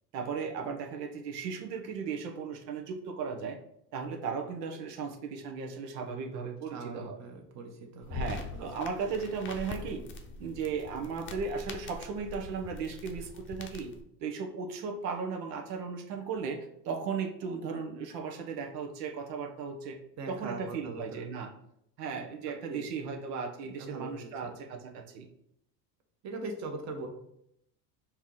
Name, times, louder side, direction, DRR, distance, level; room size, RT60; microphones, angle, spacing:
voice 1, 0.1-3.6 3.9-7.2 8.1-10.0 10.4-13.9 14.2-20.0 20.3-21.5 22.0-25.3, right 5 dB, 80° right, 3 dB, 0.9 m, -36 dB
voice 2, 6.7-8.2 8.5-8.7 20.2-21.3 22.7-22.9 23.8-24.5 26.2-27.1, right 3 dB, 35° right, 3 dB, 1.0 m, -41 dB
sound 1, 8.0-14.0, left 4 dB, 25° left, 0.6 m, -43 dB
4.6 x 2.9 x 3.7 m, 0.74 s
supercardioid pair, 110°, 47 cm